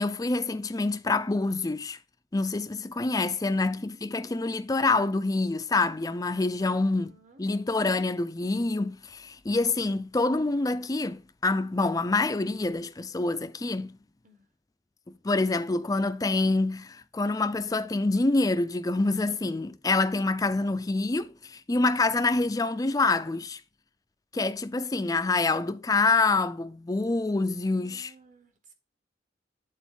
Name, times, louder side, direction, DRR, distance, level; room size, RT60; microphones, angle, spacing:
voice 1, 0.0-2.0 2.3-7.1 7.4-14.0 15.2-23.6 24.3-28.1, left 3 dB, 20° left, 0.4 m, -26 dB
voice 2, 3.5-3.9 6.6-7.4 14.2-14.5 27.7-28.7, right 3 dB, 45° right, 1.5 m, -56 dB
8.3 x 4.1 x 5.2 m
head